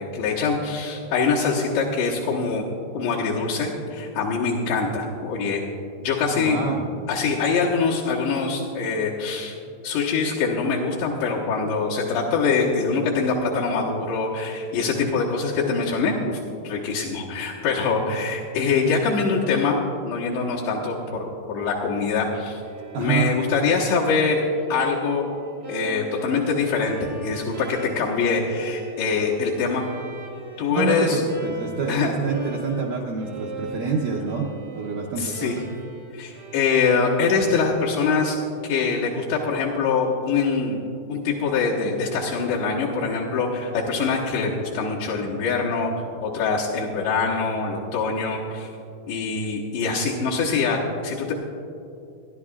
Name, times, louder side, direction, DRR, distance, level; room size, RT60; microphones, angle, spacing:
voice 1, 0.0-2.6 2.9-5.6 6.0-6.6 7.1-9.5 9.8-16.4 16.6-19.8 20.0-22.6 23.0-24.4 24.7-25.3 25.7-29.8 30.6-31.2 31.9-32.1 35.2-35.6 36.1-38.4 38.6-40.8 41.1-45.9 46.2-48.7 49.1-50.8 51.0-51.3, left 4 dB, 80° left, -6 dB, 3.3 m, -24 dB
voice 2, 6.3-6.8 22.9-23.3 30.7-34.5 34.8-35.6, right 5 dB, 80° right, -1 dB, 1.9 m, -27 dB
Bowed string instrument, 22.6-38.1, right 2 dB, 60° right, 1.1 m, -40 dB
27.5 x 11.5 x 2.4 m, 2.6 s
omnidirectional pair, 5.0 m